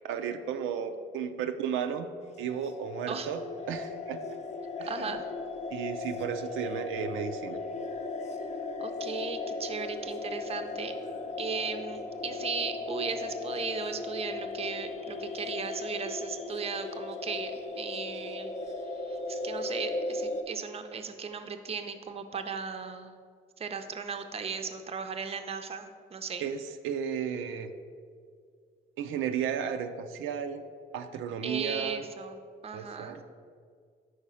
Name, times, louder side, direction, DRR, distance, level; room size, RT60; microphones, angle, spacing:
voice 1, 0.0-2.1 2.4-3.4 3.7-4.4 4.8-5.1 5.7-7.6 26.4-27.7 29.0-30.6 30.9-32.0 32.7-33.2, right 8 dB, 85° right, 7 dB, 0.4 m, -34 dB
sound 1, 2.2-20.4, left 3 dB, 35° left, 0.5 m, -37 dB
voice 2, 4.9-5.2 8.8-11.0 11.4-18.5 18.8-23.1 23.6-26.4 31.4-32.4 32.6-33.2, right 5 dB, 30° right, 7 dB, 0.5 m, -36 dB
4.9 x 4.6 x 5.5 m, 2.1 s
cardioid pair, 90°, 20 cm